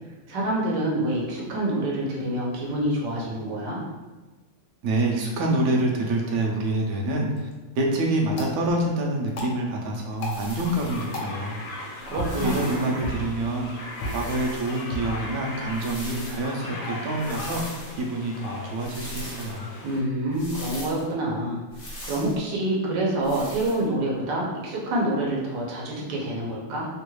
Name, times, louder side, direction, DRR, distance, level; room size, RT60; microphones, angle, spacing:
voice 1, 0.3-3.8 12.1-12.9 19.8-26.9, right 1 dB, 90° right, -3 dB, 1.3 m, -27 dB
voice 2, 4.8-7.5 7.7-11.6 12.3-17.6 18.0-19.7, right 1 dB, 70° right, -1 dB, 1.0 m, -26 dB
sound 1, 7.3-17.3, equal, 85° left, 1.3 m, -39 dB
sound 2, 10.2-11.2 12.0-13.0 14.0-14.9 15.7-16.5 17.2-18.0 18.8-19.6 20.3-21.0 21.7-22.4 23.2-23.8, left 1 dB, 55° left, 0.6 m, -40 dB
sound 3, 10.6-20.0, left 2 dB, 70° left, 1.1 m, -38 dB
3.2 x 2.2 x 3.0 m, 1.2 s
omnidirectional pair, 1.8 m